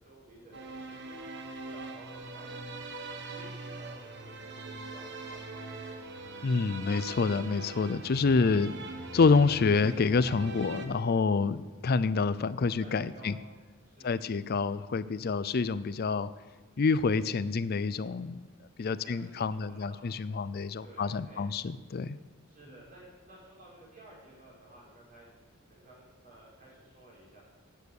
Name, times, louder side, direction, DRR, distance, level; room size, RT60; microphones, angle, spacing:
voice 1, 0.0-2.8 3.2-5.9 8.4-8.7 12.8-13.4 13.8-14.3 19.0-20.1 20.8-21.4 22.5-25.3 25.6-27.4, right 1 dB, 40° right, -6 dB, 5.5 m, -54 dB
sound 1, 0.5-10.9, right 2 dB, 55° right, 1.3 m, -42 dB
voice 2, 6.4-8.7 9.1-13.3 14.0-16.3 16.8-18.4 18.8-22.2, left 4 dB, 50° left, 16 dB, 0.4 m, -27 dB
12.0 x 9.3 x 6.5 m, 1.2 s
head